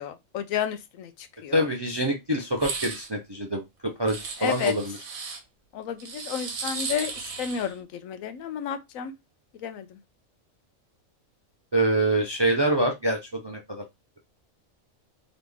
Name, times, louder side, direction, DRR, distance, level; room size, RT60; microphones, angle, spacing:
voice 1, 0.0-1.7 4.4-4.7 5.7-7.1 7.4-9.1 9.6-10.0, left 8 dB, 80° left, 1.0 m, -31 dB
voice 2, 1.5-3.6 4.0-4.9 11.7-13.8, right 1 dB, 35° right, 0.4 m, -25 dB
sound 1, 2.5-3.1 4.1-5.4 6.0-7.7, right 5 dB, 85° right, 1.4 m, -35 dB
3.9 x 3.0 x 3.4 m
omnidirectional pair, 1.4 m